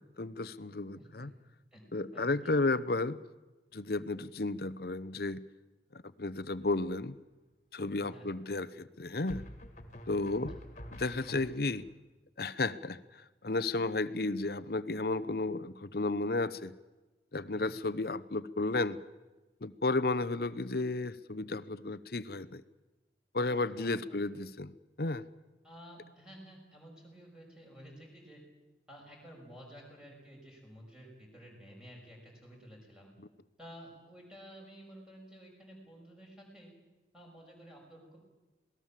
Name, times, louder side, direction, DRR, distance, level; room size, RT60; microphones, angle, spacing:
voice 1, 0.2-1.3 1.9-3.2 3.7-5.4 5.9-7.2 7.7-9.4 10.1-10.5 10.9-11.9 12.4-13.0 13.4-16.7 17.3-19.0 19.6-22.6 23.3-24.7 25.0-25.2, left 2 dB, 55° left, 15 dB, 0.9 m, -33 dB
voice 2, 0.9-1.3 1.7-1.8 2.1-2.5 8.0-8.3 10.2-10.5 17.5-17.7 23.7-24.2 25.6-28.4 28.9-33.1 33.6-36.7 37.1-38.2, equal, 5° right, -2 dB, 6.2 m, -52 dB
sound 1, 6.6-7.1 9.3-11.9, left 1 dB, 40° left, 2.4 m, -48 dB
27.0 x 19.0 x 7.5 m, 1.1 s
head